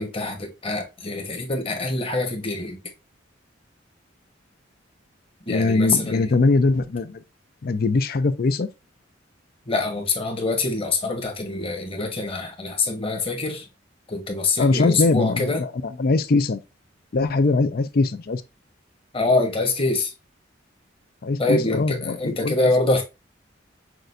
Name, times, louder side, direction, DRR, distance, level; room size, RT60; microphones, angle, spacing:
voice 1, 0.0-2.8 5.5-6.3 9.7-13.7 14.1-15.6 19.1-20.1 21.4-23.0, left 3 dB, 30° left, 1.2 m, -25 dB
voice 2, 5.5-7.2 7.6-8.7 14.6-16.6 17.1-18.4 21.2-22.5, left 3 dB, 50° left, 0.5 m, -21 dB
6.1 x 2.5 x 2.5 m
head